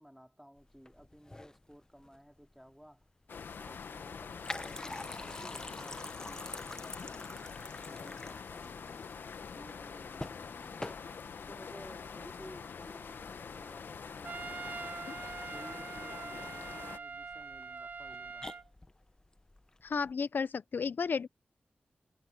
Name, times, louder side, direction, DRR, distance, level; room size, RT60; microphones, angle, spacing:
voice 1, 0.0-3.1 3.6-7.5 7.9-9.2 9.5-11.0 11.5-14.9 15.5-18.5, equal, ahead, 2.5 m, -55 dB
sound 1, 0.6-20.1, left 2 dB, 20° left, 0.9 m, -48 dB
sound 2, 3.3-17.0, left 6 dB, 90° left, 0.9 m, -45 dB
Trumpet, 14.2-18.7, right 5 dB, 55° right, 0.3 m, -43 dB
voice 2, 19.8-21.3, left 5 dB, 70° left, 0.5 m, -33 dB
wide cardioid pair, 85°, 3 cm